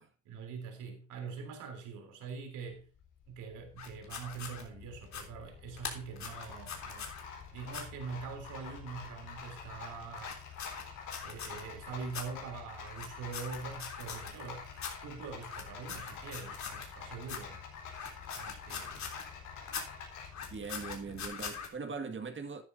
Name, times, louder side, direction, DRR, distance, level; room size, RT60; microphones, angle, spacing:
voice 1, 0.3-2.9 3.3-7.1 7.5-10.4 11.2-14.7 15.0-17.6 18.3-19.0 21.1-21.3, right 5 dB, 90° right, 3.5 m, -44 dB
Rattle, 2.7-21.3, left 6 dB, 85° left, 4.6 m, -47 dB
sound 1, 3.8-4.6 5.0-5.2 5.8-7.2 7.7-7.8 10.2-11.6 12.1-12.2 12.9-14.5 14.8-14.9 15.4-16.9 17.2-17.4 17.9-19.3 19.7-19.8 20.2-21.7, left 6 dB, 65° left, 3.4 m, -42 dB
voice 2, 20.5-22.6, right 5 dB, 40° right, 2.0 m, -41 dB
13.0 x 10.5 x 2.7 m
cardioid pair, 90°, 30 cm